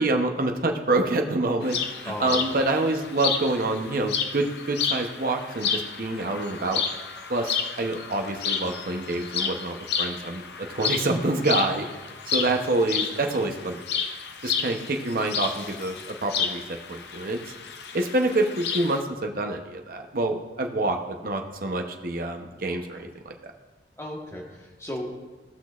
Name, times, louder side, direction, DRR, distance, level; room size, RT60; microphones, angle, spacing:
voice 1, 0.0-6.8 7.3-11.9 12.3-13.8 14.4-17.4 17.9-23.3, right 2 dB, 50° right, 3 dB, 0.8 m, -27 dB
sound 1, 1.6-19.0, left 6 dB, 65° left, 0.7 m, -31 dB
voice 2, 2.1-2.6 12.5-12.6 24.0-25.2, equal, 15° left, -1 dB, 1.3 m, -35 dB
17.0 x 6.1 x 2.4 m, 1.2 s
head